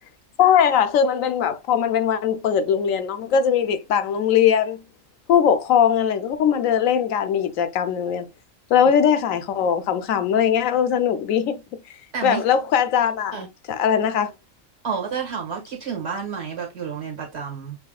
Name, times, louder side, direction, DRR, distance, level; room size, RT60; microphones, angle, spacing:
voice 1, 0.4-4.8 5.3-8.3 8.7-11.6 12.2-13.4 13.7-14.3, left 8 dB, 80° left, 1.0 m, -20 dB
voice 2, 12.1-12.4 13.3-13.5 14.8-17.8, right 6 dB, 55° right, 1.9 m, -30 dB
6.9 x 3.0 x 2.3 m
omnidirectional pair, 1.4 m